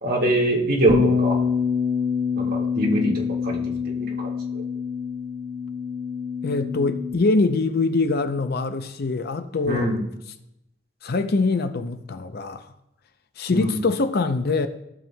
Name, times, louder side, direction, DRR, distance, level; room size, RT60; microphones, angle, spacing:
voice 1, 0.0-1.4 2.4-3.6 3.9-4.6 9.6-10.0 13.5-13.7, right 1 dB, 50° right, 1.7 m, -24 dB
Bass guitar, 0.9-7.1, left 5 dB, 85° right, 1.2 m, -25 dB
voice 2, 6.4-9.9 11.0-12.7 13.4-14.7, left 3 dB, 55° left, 0.5 m, -23 dB
15.0 x 7.3 x 2.2 m
head